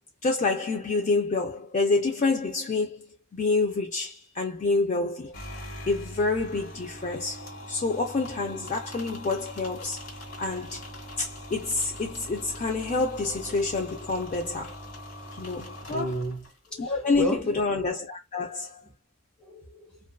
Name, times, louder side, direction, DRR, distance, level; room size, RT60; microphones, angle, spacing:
voice 1, 0.2-3.1 3.3-5.3 5.9-10.1 10.4-10.9 11.2-14.9 15.3-16.2 16.8-18.8, left 3 dB, 35° left, 0.4 m, -28 dB
sound 1, 5.3-16.7, equal, 80° left, 1.2 m, -42 dB
voice 2, 15.9-17.6 19.4-20.0, equal, 5° left, 0.9 m, -33 dB
2.5 x 2.2 x 2.2 m
head